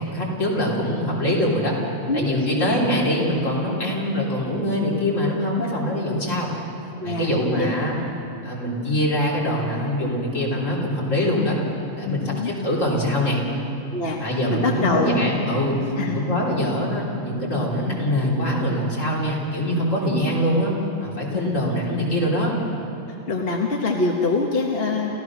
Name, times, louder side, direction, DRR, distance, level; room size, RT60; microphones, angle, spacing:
voice 1, 0.0-1.8 2.1-6.5 7.0-8.0 8.4-11.6 12.0-13.4 14.2-20.7 21.0-22.5, equal, 70° left, -4 dB, 3.9 m, -23 dB
voice 2, 5.6-6.0 7.0-7.7 12.0-12.5 13.9-14.2 14.5-15.1 16.0-16.2 21.3-21.5 23.3-25.1, left 3 dB, 50° left, 0 dB, 1.5 m, -25 dB
29.5 x 15.0 x 6.1 m, 2.8 s
omnidirectional pair, 1.3 m